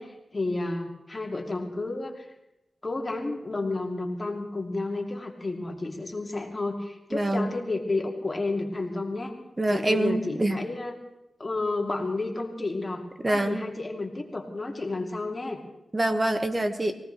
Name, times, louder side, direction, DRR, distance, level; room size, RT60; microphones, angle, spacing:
voice 1, 0.0-2.3 2.8-9.4 9.7-10.9 11.4-15.6, left 2 dB, 35° left, 1 dB, 2.7 m, -31 dB
voice 2, 7.1-7.6 9.6-10.6 13.2-13.6 15.9-17.0, right 1 dB, 30° right, 6 dB, 1.8 m, -25 dB
23.5 x 17.5 x 3.4 m, 0.91 s
cardioid pair, 55°, 0 cm